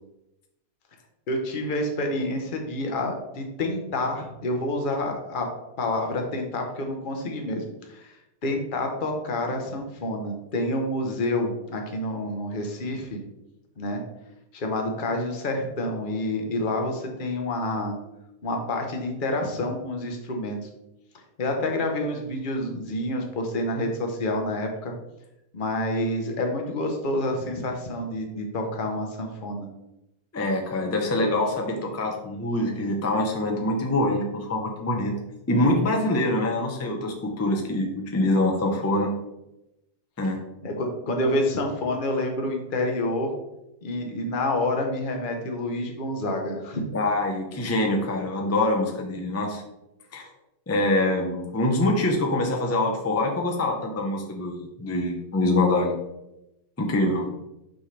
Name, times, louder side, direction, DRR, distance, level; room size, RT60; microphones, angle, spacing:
voice 1, 1.3-5.5 5.8-7.6 7.9-8.2 8.4-13.2 13.8-14.0 14.5-17.9 18.4-20.6 21.4-24.9 25.5-29.7 40.6-43.3 43.8-46.8, left 1 dB, 35° left, 3 dB, 1.0 m, -28 dB
voice 2, 30.3-35.1 35.5-39.1 40.2-40.4 46.9-49.6 50.1-50.3 50.7-56.0 56.8-57.3, left 1 dB, 15° left, 2 dB, 0.6 m, -24 dB
6.1 x 5.7 x 3.3 m, 0.89 s
omnidirectional pair, 1.7 m